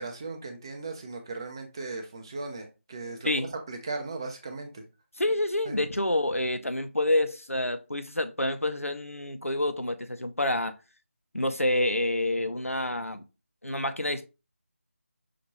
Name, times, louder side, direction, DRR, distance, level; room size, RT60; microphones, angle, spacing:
voice 1, 0.0-3.3 3.7-4.8 5.7-5.8, right 3 dB, 20° right, 0.6 m, -37 dB
voice 2, 5.2-10.7 11.3-13.2 13.6-14.3, left 1 dB, 90° left, 0.7 m, -28 dB
5.8 x 2.5 x 3.1 m
figure-of-eight pair, 160°, 7 cm